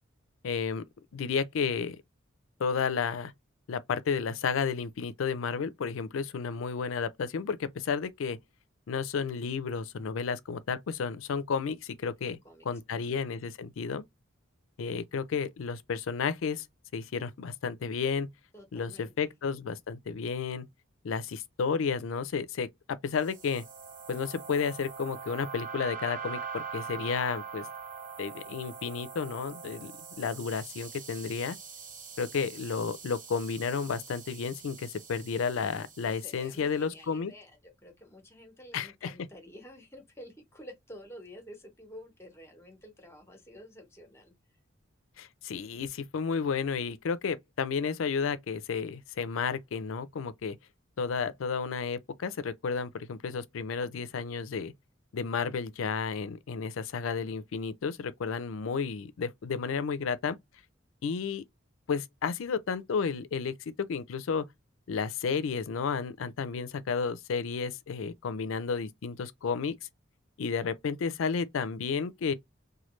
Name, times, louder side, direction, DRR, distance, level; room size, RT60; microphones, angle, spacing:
voice 1, 0.4-0.8 1.1-2.0 2.6-3.3 3.7-8.4 8.9-12.4 12.7-14.0 14.8-16.7 16.9-18.3 18.7-20.7 21.0-23.6 24.1-27.7 28.2-31.6 32.2-37.3 38.7-39.1 45.2-50.6 51.0-54.7 55.1-60.4 61.0-61.4 61.9-64.5 64.9-69.8 70.4-72.3, left 5 dB, 75° left, 0.4 m, -32 dB
voice 2, 12.2-13.0 18.5-19.3 36.1-44.6, equal, 15° left, 0.9 m, -50 dB
sound 1, 23.2-36.6, right 6 dB, 40° right, 0.7 m, -43 dB
3.1 x 2.2 x 3.0 m
head